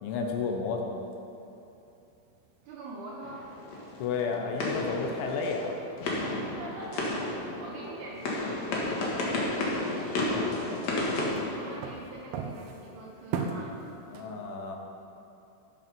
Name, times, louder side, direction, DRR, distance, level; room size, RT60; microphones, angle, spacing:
voice 1, 0.0-0.9 4.0-5.7 14.1-14.8, left 5 dB, 75° left, 2 dB, 3.3 m, -31 dB
sound 1, 0.9-14.2, right 5 dB, 85° right, 2.2 m, -43 dB
voice 2, 2.6-3.5 6.6-13.8, right 2 dB, 70° right, -3 dB, 2.5 m, -44 dB
sound 2, 3.2-12.3, left 2 dB, 60° left, 1.9 m, -33 dB
14.5 x 7.8 x 5.3 m, 2.9 s
omnidirectional pair, 5.7 m